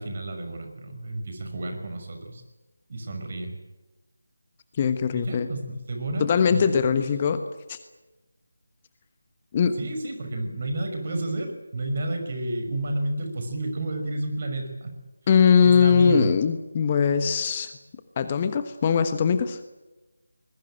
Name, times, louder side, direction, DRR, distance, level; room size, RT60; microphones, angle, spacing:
voice 1, 0.0-2.4 2.9-3.5 5.1-6.8 9.8-14.9 15.6-16.3, right 2 dB, 40° right, 5 dB, 5.9 m, -31 dB
voice 2, 4.8-5.5 6.2-7.4 7.7-7.8 9.5-9.8 15.3-17.7 18.2-19.6, left 6 dB, 25° left, 10 dB, 1.2 m, -21 dB
23.0 x 21.5 x 9.1 m, 1.1 s
figure-of-eight pair, 160°, 0 cm